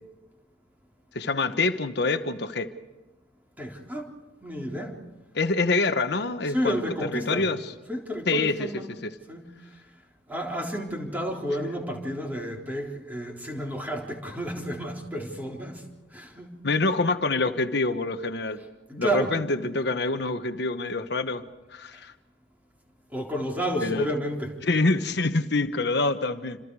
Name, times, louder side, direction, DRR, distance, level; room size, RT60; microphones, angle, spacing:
voice 1, 1.1-2.7 5.3-6.8 7.1-7.6 8.3-8.7 9.0-9.1 16.6-18.6 19.0-21.4 21.7-22.1 23.8-24.1 24.6-26.6, left 3 dB, 60° left, 8 dB, 1.2 m, -26 dB
voice 2, 3.6-4.2 4.4-5.0 6.5-7.5 7.9-8.9 9.3-9.8 10.3-15.9 16.1-16.6 18.9-19.3 23.1-24.5, equal, 10° right, 0 dB, 3.7 m, -31 dB
28.5 x 27.0 x 4.8 m, 1.1 s
head